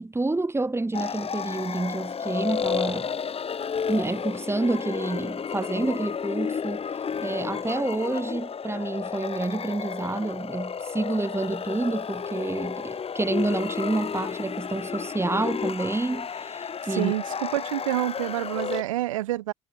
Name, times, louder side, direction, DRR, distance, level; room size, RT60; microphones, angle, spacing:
voice 1, 0.0-3.1 3.9-6.8 7.2-17.1, right 2 dB, 15° right, 7.2 m, -28 dB
sound 1, 0.9-18.8, left 6 dB, 35° left, 7.9 m, -32 dB
voice 2, 16.9-19.5, right 15 dB, 70° right, 2.9 m, -28 dB
figure-of-eight pair, 50°, 17 cm